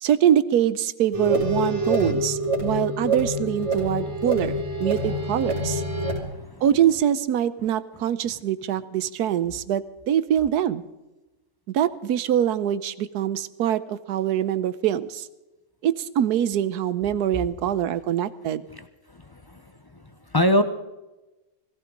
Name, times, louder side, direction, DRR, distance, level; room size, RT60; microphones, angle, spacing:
voice 1, 0.0-5.8 6.6-10.8 11.7-15.3 15.8-18.6, right 10 dB, 85° right, 15 dB, 1.3 m, -24 dB
sound 1, 1.1-6.2, equal, 20° right, 3.0 m, -26 dB
voice 2, 6.0-6.6 18.7-19.6 19.9-20.0 20.3-20.6, left 1 dB, 30° left, 9 dB, 0.4 m, -25 dB
18.5 x 16.5 x 3.9 m, 1.0 s
omnidirectional pair, 1.6 m